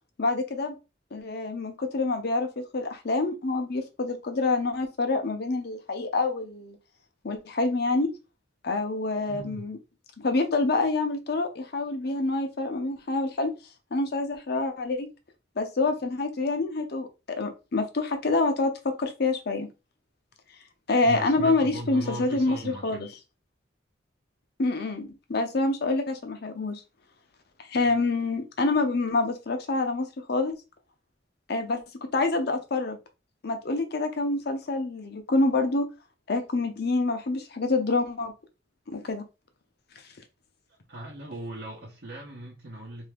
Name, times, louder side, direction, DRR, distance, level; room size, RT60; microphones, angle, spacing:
voice 1, 0.2-0.8 1.1-6.8 7.2-8.1 8.6-9.8 10.2-13.5 13.9-15.1 15.6-19.7 20.9-23.1 24.6-26.8 27.6-30.6 31.5-33.0 33.4-35.9 36.3-38.3 38.9-39.2, left 3 dB, 60° left, 0.7 m, -27 dB
voice 2, 9.3-9.7 21.0-23.1 27.8-28.0 40.9-43.1, right 1 dB, 65° right, 0.8 m, -38 dB
3.2 x 2.7 x 3.4 m
head